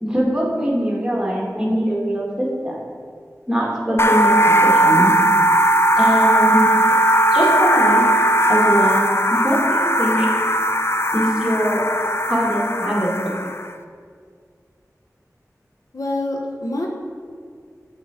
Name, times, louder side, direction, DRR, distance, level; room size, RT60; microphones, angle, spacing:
voice 1, 0.0-2.8 3.5-4.3 4.6-5.1 6.0-6.8 7.3-8.0 8.5-10.3 11.1-11.9 12.3-13.1 13.4-13.5, equal, 15° right, -4 dB, 1.7 m, -22 dB
sound 1, 4.0-13.7, right 1 dB, 40° left, 0.4 m, -17 dB
voice 2, 15.9-16.9, left 1 dB, 65° left, 0 dB, 0.8 m, -25 dB
7.2 x 3.8 x 4.9 m, 2.1 s
wide cardioid pair, 45°, 6 cm